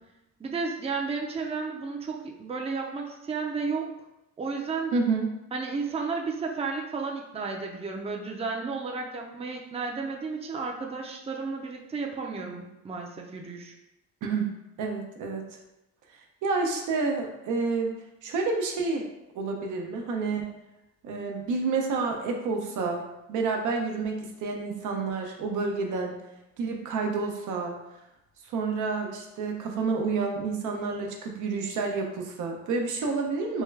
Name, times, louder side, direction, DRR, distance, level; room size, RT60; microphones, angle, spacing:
voice 1, 0.4-3.9 4.4-4.9 5.5-13.7, right 4 dB, 20° right, 0 dB, 0.5 m, -33 dB
voice 2, 4.9-5.3 14.2-14.5 14.8-15.6 16.4-19.1 19.3-20.5 21.0-23.0 23.3-26.2 26.6-27.8 28.4-33.6, right 4 dB, 80° right, 2 dB, 0.6 m, -29 dB
3.5 x 2.2 x 3.2 m, 0.90 s
cardioid pair, 90°, 30 cm